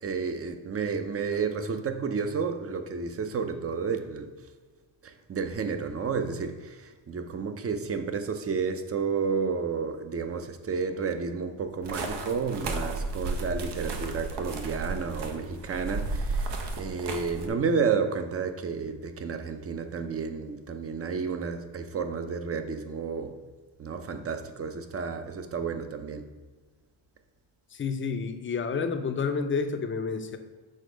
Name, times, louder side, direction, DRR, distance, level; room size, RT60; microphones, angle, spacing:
voice 1, 0.0-4.3 5.0-23.4 23.8-26.3, right 5 dB, 35° right, 0.6 m, -31 dB
sound 1, 11.8-17.5, right 3 dB, 75° right, 1.0 m, -33 dB
voice 2, 27.7-30.4, left 5 dB, 30° left, 0.6 m, -29 dB
6.5 x 4.1 x 5.1 m
cardioid pair, 125°, 43 cm